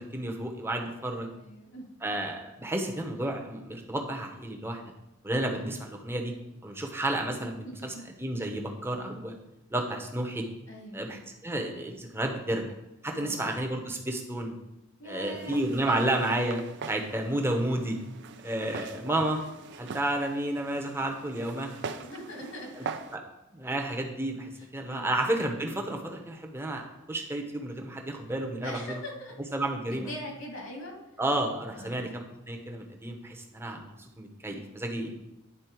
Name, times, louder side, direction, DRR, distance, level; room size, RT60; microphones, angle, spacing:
voice 1, 0.0-1.3 2.0-4.8 5.2-6.3 6.6-7.9 8.2-9.4 9.7-10.4 10.9-12.6 13.0-14.6 15.0-16.6 16.9-18.0 18.4-19.4 19.8-21.7 22.8-22.9 23.5-26.8 27.1-29.0 29.5-30.1 31.2-35.1, right 1 dB, 10° right, 2 dB, 0.9 m, -31 dB
voice 2, 1.4-1.9 7.4-8.0 10.7-11.1 13.2-13.6 15.0-16.3 22.0-22.9 24.6-25.2 28.6-29.4 29.9-31.2 31.7-32.2, equal, 75° left, -1 dB, 2.1 m, -42 dB
Walk footsteps, 15.3-23.2, right 5 dB, 60° right, 0.5 m, -42 dB
9.7 x 4.3 x 4.5 m, 0.93 s
head